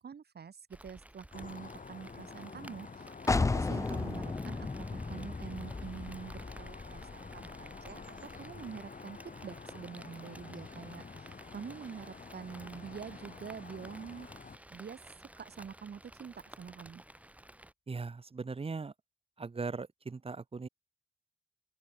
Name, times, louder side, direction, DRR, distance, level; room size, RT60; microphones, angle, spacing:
voice 1, 0.0-3.1 3.4-14.3 14.7-15.0 15.4-17.0, right 7 dB, 65° right, 1.9 m, -46 dB
Rain, 0.7-17.7, right 1 dB, 10° right, 1.5 m, -54 dB
sound 1, 1.3-14.6, left 4 dB, 50° left, 3.1 m, -48 dB
sound 2, 3.3-8.8, left 3 dB, 15° left, 0.4 m, -35 dB
voice 2, 17.9-18.9 19.4-20.7, right 4 dB, 30° right, 0.8 m, -39 dB
open air
supercardioid pair, 45°, 18 cm